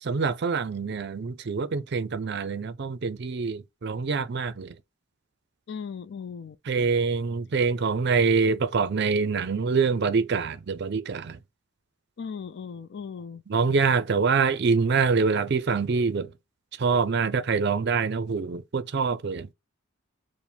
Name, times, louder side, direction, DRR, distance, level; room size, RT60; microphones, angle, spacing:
voice 1, 0.0-4.8 6.7-11.4 13.5-16.3 16.8-19.5, right 5 dB, 50° right, 0.4 m, -25 dB
voice 2, 5.7-6.9 12.2-13.4, left 6 dB, 55° left, 0.4 m, -38 dB
4.9 x 2.1 x 3.3 m
head